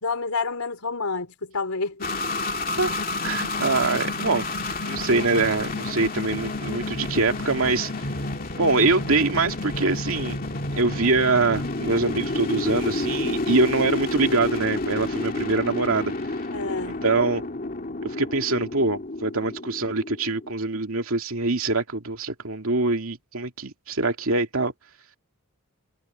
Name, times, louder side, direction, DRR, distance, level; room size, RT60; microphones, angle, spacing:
voice 1, 0.0-2.1 16.5-17.1, left 4 dB, 85° left, 3.7 m, -29 dB
sound 1, 2.0-20.5, left 2 dB, 40° left, 2.4 m, -30 dB
voice 2, 3.2-4.5 4.8-7.9 8.6-10.4 10.8-16.1 17.0-17.5 18.0-24.7, right 3 dB, 70° right, 2.5 m, -24 dB
head